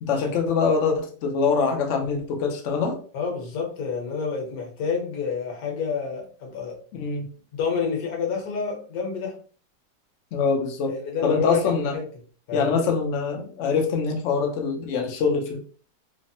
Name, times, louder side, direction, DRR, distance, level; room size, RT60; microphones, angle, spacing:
voice 1, 0.0-3.0 6.9-7.3 10.3-10.9 11.2-12.0 12.5-15.6, left 5 dB, 85° left, 3 dB, 0.6 m, -24 dB
voice 2, 3.1-6.8 7.5-9.3 10.9-12.0 12.5-12.9, left 5 dB, 60° left, 1 dB, 1.2 m, -29 dB
3.3 x 2.0 x 2.6 m, 0.43 s
omnidirectional pair, 1.9 m